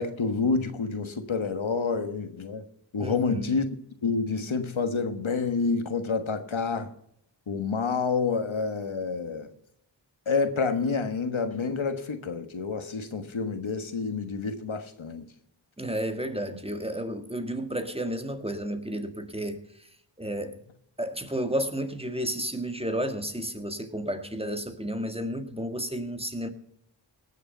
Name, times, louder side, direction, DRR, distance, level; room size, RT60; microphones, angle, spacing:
voice 1, 0.0-2.6 2.9-3.6 4.0-6.9 7.5-9.5 10.3-15.2, left 4 dB, 80° left, 1.4 m, -28 dB
voice 2, 3.0-3.6 15.8-19.6 20.2-20.6 21.0-26.5, equal, 10° right, 1.6 m, -32 dB
18.5 x 6.6 x 5.5 m
wide cardioid pair, 40°, 47 cm